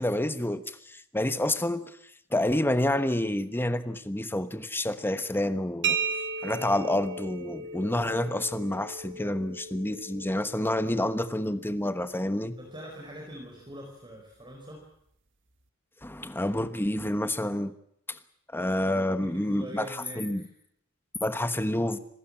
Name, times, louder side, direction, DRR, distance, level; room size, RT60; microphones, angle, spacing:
voice 1, 0.0-1.8 2.3-6.0 6.4-12.5 16.0-17.7 18.1-18.2 18.5-19.9 20.2-20.4 21.2-22.0, left 1 dB, 10° left, 11 dB, 1.1 m, -28 dB
sound 1, 5.8-13.4, right 5 dB, 60° right, 1.6 m, -36 dB
voice 2, 12.6-14.8 18.9-20.5, right 1 dB, 25° right, 0 dB, 4.8 m, -43 dB
27.0 x 15.0 x 8.7 m, 0.73 s
head